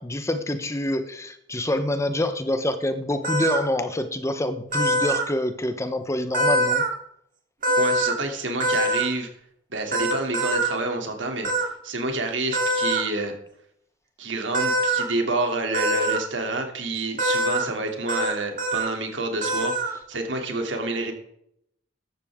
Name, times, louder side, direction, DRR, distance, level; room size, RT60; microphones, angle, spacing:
voice 1, 0.0-6.9, left 1 dB, 15° left, 9 dB, 1.0 m, -26 dB
sound 1, 3.2-3.6 4.7-5.2 6.3-6.9 7.6-8.1 8.6-9.0 9.9-10.7 11.4-11.7 12.5-13.0 14.5-15.0 15.7-16.2 17.2-17.6 18.1-18.3 18.6-18.9 19.4-19.9, right 1 dB, 45° right, 3.1 m, -23 dB
voice 2, 7.8-9.3 9.7-13.3 14.2-21.1, right 2 dB, 75° right, 3 dB, 3.0 m, -28 dB
15.0 x 12.0 x 3.7 m, 0.71 s
head